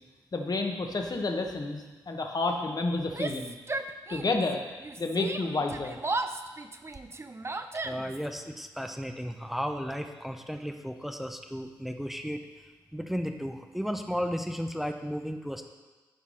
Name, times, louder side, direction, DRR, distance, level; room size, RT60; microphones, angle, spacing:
voice 1, 0.3-3.6 4.1-4.6 5.0-6.0, left 3 dB, 45° left, 4 dB, 1.3 m, -30 dB
Yell, 3.1-4.5 4.8-8.3, right 3 dB, 30° right, 0.7 m, -35 dB
voice 2, 7.8-12.5 12.9-15.6, equal, ahead, 5 dB, 0.9 m, -34 dB
10.5 x 4.6 x 5.7 m, 1.3 s
hypercardioid pair, 40°, 9 cm